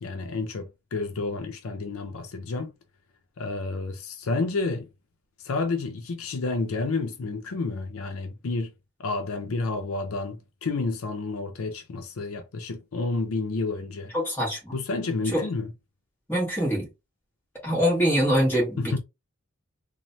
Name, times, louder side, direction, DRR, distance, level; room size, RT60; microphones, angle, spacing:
voice 1, 0.0-2.7 3.4-4.9 5.4-8.7 9.0-14.1 14.7-15.7 18.8-19.0, left 3 dB, 80° left, 0.5 m, -30 dB
voice 2, 14.1-14.7 15.3-15.4 16.3-16.9 17.6-19.0, equal, 10° left, 1.4 m, -24 dB
3.1 x 2.1 x 2.7 m
head